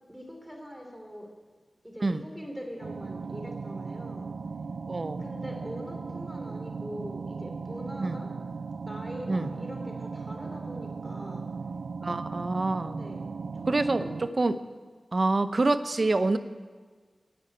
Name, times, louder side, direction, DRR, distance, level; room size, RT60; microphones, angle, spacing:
voice 1, 0.1-1.3 1.8-4.3 5.2-8.3 8.9-11.5 12.9-14.2, equal, 5° right, 1 dB, 3.4 m, -42 dB
sound 1, 2.8-14.3, right 4 dB, 85° right, 0.4 m, -37 dB
voice 2, 4.9-5.2 8.0-8.1 9.3-9.5 12.0-13.0 13.7-14.6 15.1-16.4, right 2 dB, 50° right, 11 dB, 0.7 m, -26 dB
11.0 x 9.1 x 8.8 m, 1.5 s
wide cardioid pair, 55°, 0 cm